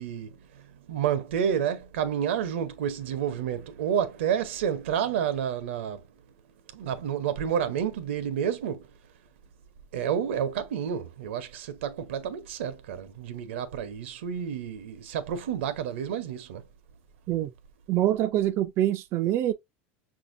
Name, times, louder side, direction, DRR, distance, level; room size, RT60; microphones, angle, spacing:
voice 1, 0.0-6.1 6.7-8.9 9.9-16.6, right 8 dB, 85° right, 0.7 m, -30 dB
voice 2, 17.9-19.5, right 13 dB, 45° right, 0.3 m, -25 dB
5.8 x 2.7 x 2.5 m
supercardioid pair, 130°, 6 cm